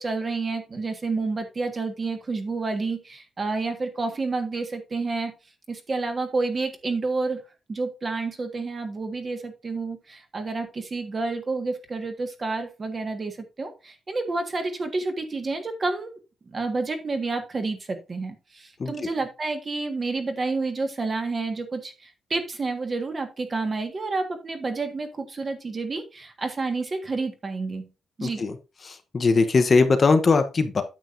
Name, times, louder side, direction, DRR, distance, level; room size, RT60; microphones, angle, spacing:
voice 1, 0.0-5.3 5.7-7.4 7.7-16.2 16.5-27.9 28.2-28.4, right 3 dB, 30° right, 6 dB, 1.5 m, -29 dB
voice 2, 28.2-28.5 28.8-30.8, left 4 dB, 30° left, 8 dB, 0.8 m, -20 dB
9.1 x 8.4 x 2.6 m, 0.29 s
wide cardioid pair, 170°, 0 cm